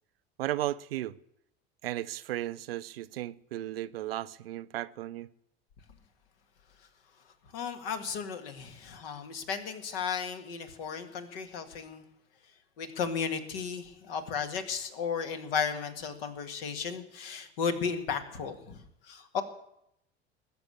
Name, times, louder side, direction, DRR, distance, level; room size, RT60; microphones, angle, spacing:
voice 1, 0.4-1.2 1.8-5.3, right 14 dB, 65° right, 0.6 m, -35 dB
voice 2, 7.5-12.0 12.8-18.8 19.1-19.4, left 6 dB, 60° left, 2.0 m, -34 dB
20.0 x 7.0 x 8.5 m
figure-of-eight pair, 70°, 32 cm